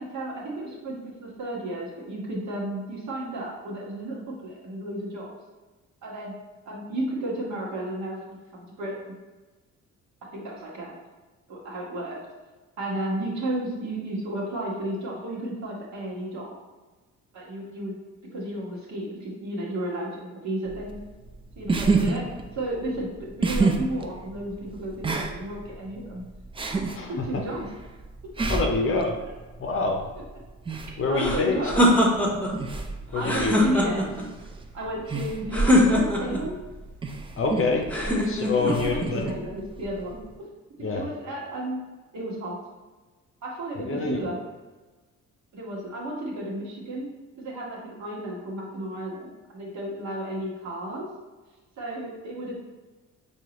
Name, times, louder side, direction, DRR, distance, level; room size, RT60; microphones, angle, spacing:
voice 1, 0.0-5.3 6.0-6.3 6.7-9.1 10.3-11.0 11.5-12.2 12.8-16.5 17.3-17.9 18.3-21.0 21.6-22.2 22.5-26.2 26.7-27.6 28.5-28.7 31.1-32.1 33.1-34.2 34.7-36.6 38.0-38.2 38.6-40.2 40.9-41.8 42.1-42.6 43.4-44.4 45.5-47.1 47.4-51.0 51.8-52.6, right 1 dB, 70° right, -5 dB, 1.4 m, -33 dB
sound 1, 20.7-40.3, right 3 dB, 20° right, 0.3 m, -31 dB
voice 2, 27.0-27.4 28.5-29.2 29.6-30.0 31.0-31.6 33.1-33.6 37.4-37.8 38.3-39.3 40.8-41.0 43.8-44.2, left 4 dB, 45° left, 2 dB, 0.6 m, -26 dB
sound 2, 31.2-32.5 33.2-34.2 35.5-36.4 37.9-38.8, left 1 dB, 5° left, 0.8 m, -22 dB
4.6 x 2.8 x 2.9 m, 1.3 s
cardioid pair, 90°, 30 cm